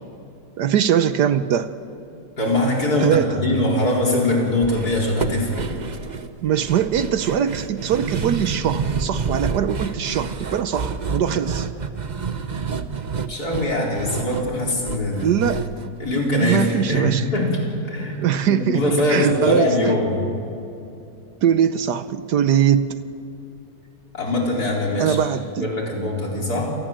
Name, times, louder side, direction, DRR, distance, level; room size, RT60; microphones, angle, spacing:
voice 1, 0.6-1.7 3.0-3.3 6.4-11.7 15.2-15.7 16.4-17.3 18.2-18.8 19.1-19.9 21.4-23.0 25.0-25.7, right 9 dB, 70° right, 12 dB, 1.3 m, -21 dB
voice 2, 2.4-5.7 13.3-15.4 16.0-20.2 24.1-25.2 25.5-26.8, left 1 dB, 55° left, -2 dB, 5.0 m, -22 dB
sound 1, 4.6-16.9 17.2-17.3 17.6-17.7, right 5 dB, 35° right, 0.7 m, -29 dB
28.5 x 19.0 x 7.6 m, 2.7 s
omnidirectional pair, 1.9 m